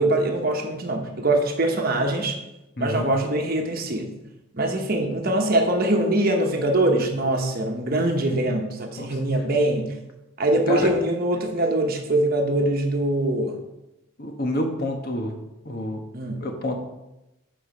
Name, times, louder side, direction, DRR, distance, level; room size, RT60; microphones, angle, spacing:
voice 1, 0.0-2.4 2.8-4.1 4.5-9.9 10.4-13.6 16.1-16.4, right 1 dB, 45° right, 3 dB, 1.1 m, -23 dB
voice 2, 2.8-3.1 9.0-9.1 10.7-10.9 14.2-15.4 15.6-16.0 16.4-16.8, left 1 dB, 45° left, 3 dB, 1.2 m, -27 dB
7.7 x 5.1 x 5.1 m, 0.93 s
head